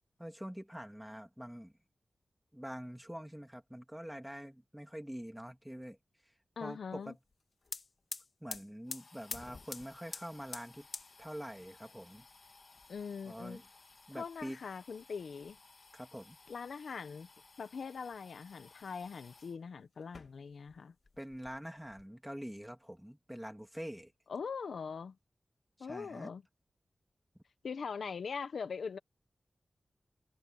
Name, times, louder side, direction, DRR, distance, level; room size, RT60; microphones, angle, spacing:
voice 1, 0.2-1.7 2.5-6.0 6.2-6.3 6.6-7.2 8.4-10.9 11.2-12.3 13.2-13.7 14.1-14.6 15.9-16.4 21.2-24.1 25.8-26.3 27.3-27.4, equal, 5° right, 2.8 m, -45 dB
voice 2, 6.6-7.1 12.9-13.6 14.1-15.6 16.5-17.3 17.6-20.9 24.3-25.2 25.8-26.4 27.6-29.0, left 5 dB, 90° left, 1.3 m, -42 dB
sound 1, 7.3-7.4 7.6-19.6 20.0-20.8 21.0-22.0, left 3 dB, 50° left, 2.3 m, -50 dB
wide cardioid pair, 90°, 0 cm